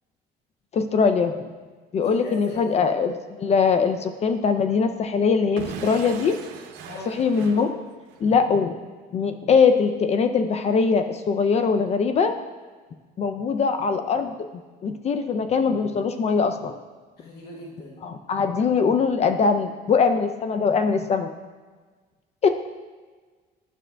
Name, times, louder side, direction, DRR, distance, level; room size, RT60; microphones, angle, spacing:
voice 1, 0.7-1.3 1.9-6.3 7.0-7.8 8.2-8.7 9.1-12.3 13.2-14.4 14.8-16.7 18.0-21.3 22.4-22.5, left 5 dB, 40° left, 8 dB, 0.4 m, -22 dB
voice 2, 2.0-2.8 6.9-7.1 17.2-18.0, left 1 dB, 70° left, -3 dB, 1.1 m, -38 dB
Explosion / Shatter, 5.6-8.3, right 6 dB, 85° right, 0.6 m, -38 dB
9.9 x 6.2 x 2.2 m, 1.4 s
cardioid pair, 110°, 17 cm